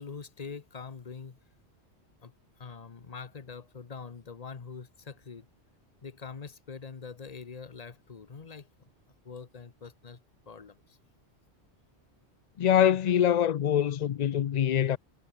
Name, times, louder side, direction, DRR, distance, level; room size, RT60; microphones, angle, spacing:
voice 1, 0.0-1.4 2.2-5.5 6.0-8.7 9.2-10.2 10.5-11.0, left 5 dB, 35° left, 1.0 m, -44 dB
voice 2, 12.6-15.0, left 10 dB, 55° left, 0.5 m, -24 dB
omnidirectional pair, 1.1 m